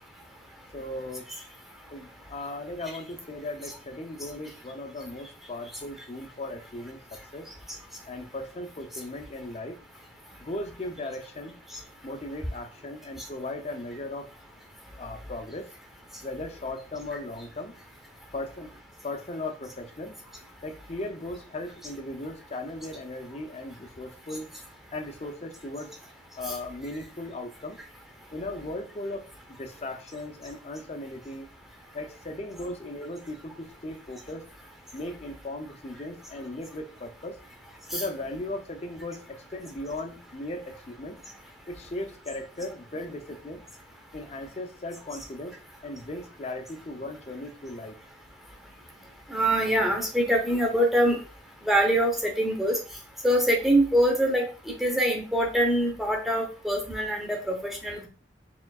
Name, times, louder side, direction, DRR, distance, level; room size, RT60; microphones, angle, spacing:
voice 1, 0.7-1.2 1.9-7.0 7.3-7.5 8.1-9.8 10.4-11.6 12.0-14.3 15.0-15.7 16.2-17.7 18.3-18.7 19.0-20.2 20.6-24.5 24.9-25.9 26.4-27.8 28.3-29.2 29.6-31.5 31.9-34.5 34.9-37.4 37.9-41.2 41.7-43.6 44.1-45.6 45.8-47.9, left 2 dB, 35° left, 5 dB, 0.5 m, -37 dB
voice 2, 49.3-51.2 51.6-52.8 53.2-58.1, right 1 dB, ahead, 1 dB, 0.8 m, -24 dB
4.4 x 3.7 x 2.3 m, 0.36 s
head